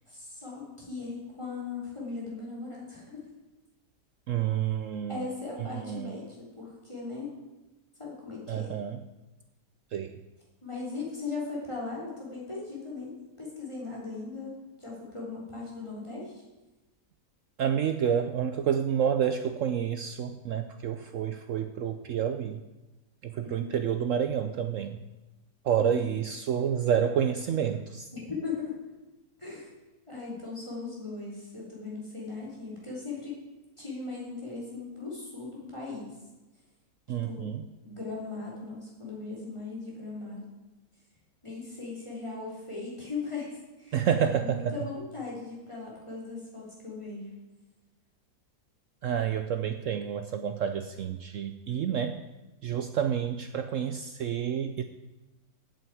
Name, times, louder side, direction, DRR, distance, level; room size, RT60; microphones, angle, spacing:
voice 1, 0.0-3.2 5.1-7.3 8.0-8.8 10.6-14.5 14.8-16.4 23.4-23.8 25.8-26.1 28.1-28.7 29.4-29.7 30.1-33.3 33.8-36.2 37.2-40.5 41.4-44.0 44.3-47.3, left 4 dB, 15° left, -5 dB, 3.8 m, -38 dB
voice 2, 4.3-5.3 5.6-6.2 8.5-9.0 9.9-10.2 17.6-22.6 23.2-25.0 25.6-28.1 37.1-37.6 43.9-44.7 49.0-52.2 52.6-54.8, right 8 dB, 70° right, 9 dB, 0.8 m, -29 dB
8.2 x 7.8 x 8.4 m, 1.1 s
omnidirectional pair, 1.8 m